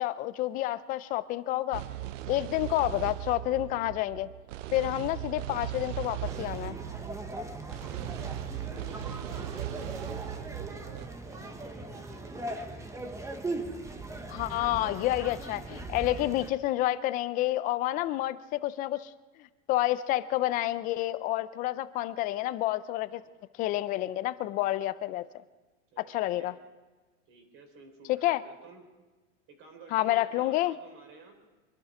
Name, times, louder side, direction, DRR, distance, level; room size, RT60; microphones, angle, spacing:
voice 1, 0.0-1.8 2.3-4.3 4.7-6.8 14.3-19.1 19.4-23.2 23.6-25.2 26.1-26.5 28.1-28.4 29.9-30.7, left 15 dB, 25° left, 15 dB, 0.4 m, -29 dB
sound 1, 1.7-11.1, right 13 dB, 85° right, 0.7 m, -38 dB
sound 2, 6.2-16.5, right 2 dB, 10° right, 1.0 m, -39 dB
voice 2, 8.4-13.0 16.2-16.4 25.9-26.6 27.3-28.8 29.5-31.4, right 4 dB, 35° right, 5 dB, 3.5 m, -52 dB
24.5 x 12.0 x 4.9 m, 1.2 s
supercardioid pair, 145°, 37 cm